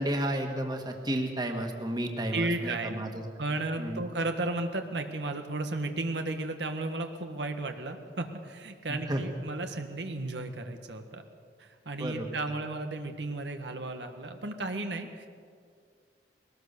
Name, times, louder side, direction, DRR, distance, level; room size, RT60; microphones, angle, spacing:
voice 1, 0.0-3.2 3.8-4.0 8.9-9.2 12.0-12.3, right 1 dB, 25° right, 3 dB, 1.8 m, -32 dB
voice 2, 2.3-3.1 3.4-11.2 11.6-15.3, right 2 dB, 85° right, 5 dB, 1.5 m, -34 dB
21.5 x 18.5 x 6.8 m, 2.1 s
head